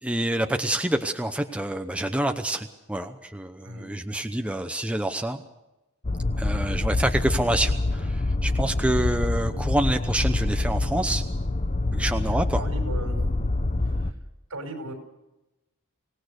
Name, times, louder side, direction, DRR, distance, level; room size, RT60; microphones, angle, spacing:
voice 1, 0.0-5.4 6.4-11.2 11.9-12.6, right 1 dB, 5° right, 6 dB, 0.8 m, -27 dB
sound 1, 6.0-14.1, left 2 dB, 35° left, 0.9 m, -26 dB
voice 2, 11.9-13.2 13.8-14.2 14.5-14.9, right 1 dB, 70° right, 5 dB, 5.4 m, -39 dB
25.0 x 18.0 x 6.6 m, 0.97 s
head